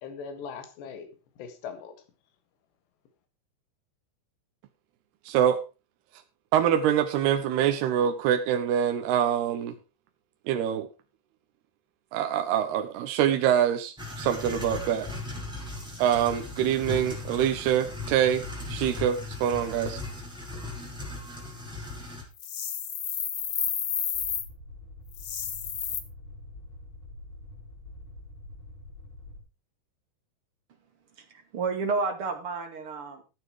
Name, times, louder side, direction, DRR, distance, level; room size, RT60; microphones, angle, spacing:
voice 1, 0.0-2.0, left 6 dB, 80° left, 7 dB, 4.1 m, -40 dB
voice 2, 5.3-5.6 6.5-9.8 10.5-10.9 12.1-15.1 16.0-18.4 18.7-20.0, right 10 dB, 75° right, 6 dB, 2.9 m, -25 dB
sound 1, 14.0-22.2, left 2 dB, ahead, 5.5 m, -37 dB
sound 2, 22.4-24.5 25.1-26.0, left 8 dB, 60° left, 1.6 m, -31 dB
sound 3, 24.1-29.4, left 2 dB, 30° left, 5.8 m, -46 dB
voice 3, 31.2-33.2, right 4 dB, 35° right, 4 dB, 2.8 m, -31 dB
14.0 x 9.3 x 4.8 m, 0.30 s
omnidirectional pair, 4.9 m